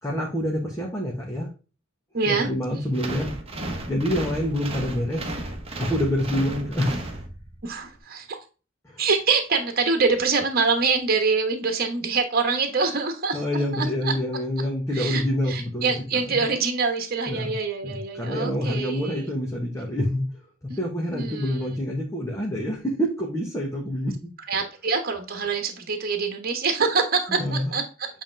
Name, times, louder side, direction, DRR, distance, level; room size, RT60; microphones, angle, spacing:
voice 1, 0.0-1.5 2.3-3.3 3.9-5.3 5.8-7.1 8.8-9.0 13.3-16.5 17.3-17.5 17.8-20.2 20.8-24.1 27.3-27.7, equal, 15° left, -2 dB, 1.4 m, -27 dB
voice 2, 2.1-2.5 7.6-8.4 9.0-13.4 13.7-14.1 14.9-19.3 20.7-20.8 21.1-21.6 24.5-28.1, right 4 dB, 50° right, 6 dB, 1.3 m, -25 dB
sound 1, 2.9-7.7, right 1 dB, 30° right, 1.3 m, -33 dB
8.2 x 3.7 x 3.4 m, 0.33 s
head